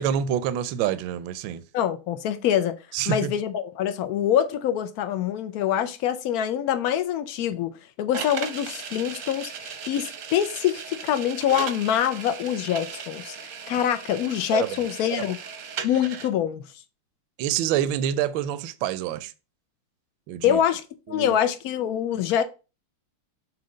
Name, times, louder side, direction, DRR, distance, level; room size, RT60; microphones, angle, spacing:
voice 1, 0.0-1.6 2.9-3.3 14.5-14.8 15.1-15.3 17.4-19.3 20.3-20.6 21.1-21.3, right 10 dB, 75° right, 1.2 m, -27 dB
voice 2, 1.7-2.8 3.1-13.4 13.7-15.4 15.8-16.6 20.4-20.8 21.1-22.4, left 10 dB, 75° left, 0.8 m, -25 dB
sound 1, 8.1-16.3, right 6 dB, 60° right, 0.9 m, -37 dB
7.6 x 2.9 x 5.2 m
omnidirectional pair, 2.3 m